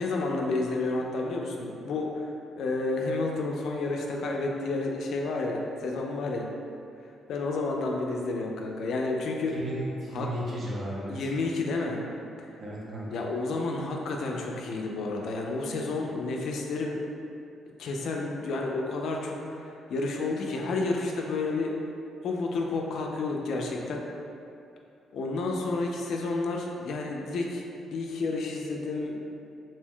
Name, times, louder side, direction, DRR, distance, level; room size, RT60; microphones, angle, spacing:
voice 1, 0.0-6.5 7.3-9.6 10.1-10.3 11.1-12.0 12.4-12.5 13.1-17.1 17.8-21.7 22.2-24.0 25.1-29.2, left 3 dB, 70° left, 0 dB, 0.3 m, -30 dB
voice 2, 9.5-11.1 12.6-13.1, right 1 dB, 45° right, -5 dB, 0.7 m, -34 dB
2.6 x 2.1 x 3.5 m, 2.6 s
cardioid pair, 90°, 0 cm